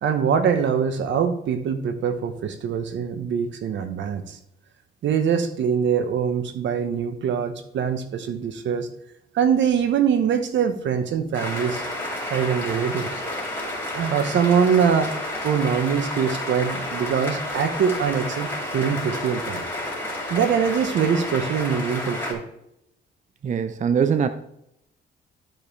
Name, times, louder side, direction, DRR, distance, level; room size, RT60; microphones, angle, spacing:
voice 1, 0.0-4.4 5.0-8.9 9.3-11.8 12.3-13.2 13.9-15.1 15.4-19.7 20.3-22.4, right 7 dB, 70° right, 9 dB, 1.1 m, -23 dB
sound 1, 11.3-22.3, left 1 dB, 10° left, 3.4 m, -30 dB
voice 2, 23.4-24.3, right 7 dB, 40° right, 9 dB, 0.5 m, -22 dB
12.5 x 5.2 x 3.2 m, 0.78 s
cardioid pair, 90°, 20 cm